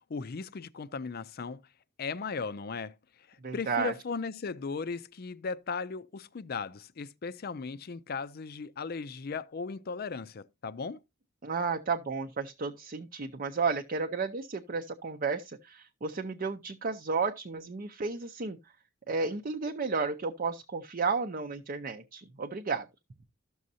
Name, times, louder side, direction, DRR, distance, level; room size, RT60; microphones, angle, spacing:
voice 1, 0.1-1.6 2.0-2.9 3.5-11.0, left 4 dB, 50° left, 0.5 m, -37 dB
voice 2, 3.4-3.9 11.4-18.6 19.1-22.9, right 4 dB, 45° right, 0.6 m, -32 dB
13.5 x 6.3 x 2.7 m
head